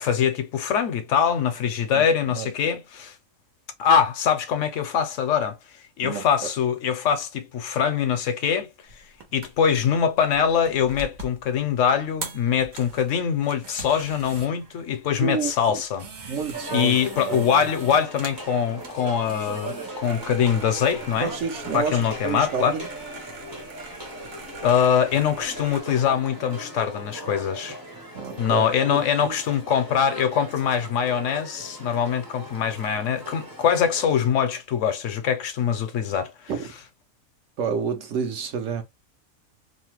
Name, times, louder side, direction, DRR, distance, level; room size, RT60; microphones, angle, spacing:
voice 1, 0.0-3.1 3.8-5.6 6.0-8.7 9.3-16.1 16.7-21.3 21.7-22.8 24.6-27.8 28.4-36.3, left 8 dB, 70° left, 0.9 m, -23 dB
sound 1, 8.9-25.8, right 3 dB, 90° right, 1.3 m, -43 dB
voice 2, 15.2-15.8 16.3-17.4 21.2-22.9 28.1-29.4 36.5-36.7 37.6-38.8, right 6 dB, 70° right, 1.0 m, -29 dB
sound 2, 16.5-34.3, right 1 dB, 20° right, 0.6 m, -39 dB
2.8 x 2.1 x 2.9 m
omnidirectional pair, 1.4 m